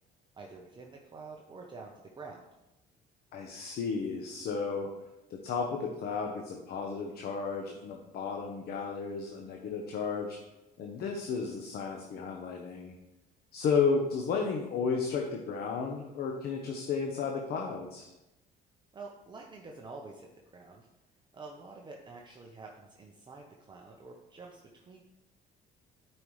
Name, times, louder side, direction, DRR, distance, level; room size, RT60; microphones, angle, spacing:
voice 1, 0.3-2.5 18.9-20.9 21.3-25.0, right 3 dB, 25° right, 0 dB, 1.0 m, -48 dB
voice 2, 3.3-4.9 5.3-10.4 10.8-12.9 13.5-18.1, left 5 dB, 65° left, 1 dB, 1.0 m, -33 dB
12.0 x 5.4 x 3.2 m, 0.96 s
cardioid pair, 110°, 17 cm